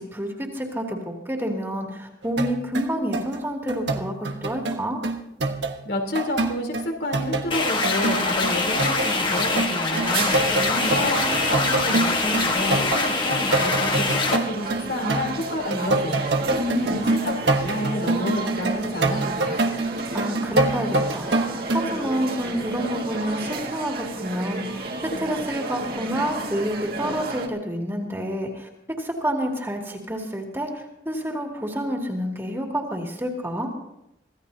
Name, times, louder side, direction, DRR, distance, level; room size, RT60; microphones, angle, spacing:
voice 1, 0.0-5.0 10.5-11.1 16.5-16.9 20.1-21.3 21.7-28.7 29.0-33.7, equal, 15° right, 0 dB, 2.5 m, -28 dB
sound 1, 2.2-5.8 6.2-7.6 7.8-15.4 15.7-21.8, right 2 dB, 80° right, 1.3 m, -26 dB
voice 2, 5.8-10.4 10.9-16.3 16.9-19.6, left 1 dB, 70° left, 1 dB, 3.5 m, -29 dB
sound 2, 7.5-14.4, left 3 dB, 25° left, 1.4 m, -24 dB
sound 3, 9.9-27.5, right 3 dB, 55° right, 2.1 m, -32 dB
25.5 x 16.5 x 2.8 m, 0.83 s
head